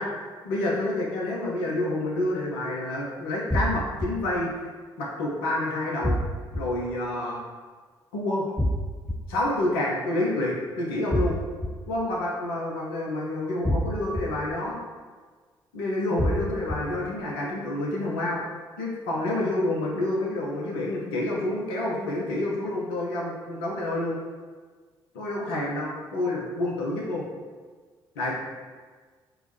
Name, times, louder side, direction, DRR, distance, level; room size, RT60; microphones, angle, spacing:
voice 1, 0.4-4.5 5.0-6.2 6.5-7.4 8.1-8.5 9.3-11.4 11.9-14.8 15.7-18.4 18.8-24.2 25.1-27.2 28.2-28.3, left 1 dB, 70° left, -4 dB, 0.6 m, -28 dB
sound 1, 3.5-4.1 6.0-6.6 8.6-9.1 11.1-11.7 13.6-14.2 16.2-16.8, equal, ahead, 0.4 m, -25 dB
4.5 x 2.0 x 3.2 m, 1.5 s
figure-of-eight pair, 45°, 13 cm